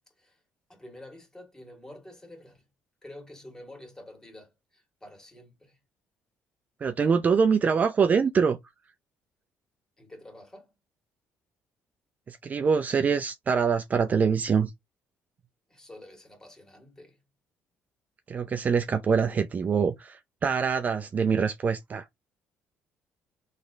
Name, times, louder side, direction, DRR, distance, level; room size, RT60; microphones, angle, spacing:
voice 1, 0.7-2.6 3.0-5.8 10.0-10.7 15.7-17.2, left 1 dB, 15° left, 2.0 m, -48 dB
voice 2, 6.8-8.6 12.3-14.7 18.3-22.0, right 6 dB, 35° right, 0.5 m, -24 dB
4.1 x 3.3 x 3.5 m
cardioid pair, 110°, 5 cm